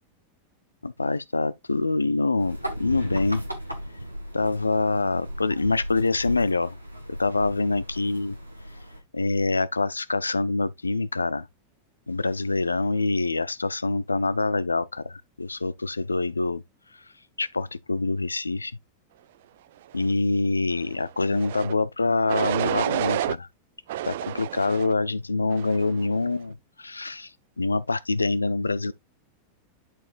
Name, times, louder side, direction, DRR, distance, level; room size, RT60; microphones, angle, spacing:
voice 1, 0.8-3.4 4.3-6.8 7.1-8.4 9.1-11.5 12.1-16.6 16.9-17.0 17.4-18.7 19.9-23.5 24.0-28.9, left 3 dB, 80° left, 0.5 m, -25 dB
sound 1, 2.4-9.0, equal, 90° right, 1.5 m, -36 dB
sound 2, 21.3-21.7 22.3-23.4 23.9-24.9 25.5-25.9, right 13 dB, 55° right, 0.3 m, -29 dB
10.5 x 4.3 x 2.4 m
figure-of-eight pair, 90°, 0 cm